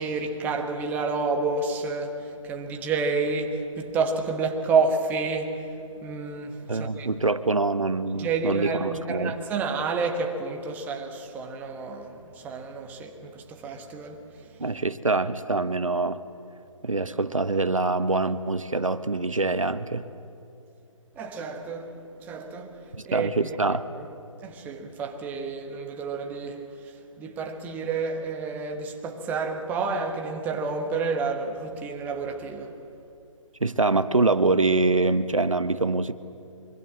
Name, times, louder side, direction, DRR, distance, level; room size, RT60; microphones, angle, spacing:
voice 1, 0.0-5.6 6.0-7.1 8.1-14.3 21.2-23.3 23.6-24.1 24.4-32.8, right 4 dB, 10° right, 1.4 m, -30 dB
voice 2, 6.7-9.3 14.6-16.2 16.8-20.1 22.9-23.9 33.6-36.1, right 3 dB, 75° right, 1.1 m, -24 dB
25.0 x 24.0 x 7.6 m
figure-of-eight pair, 145°, 17 cm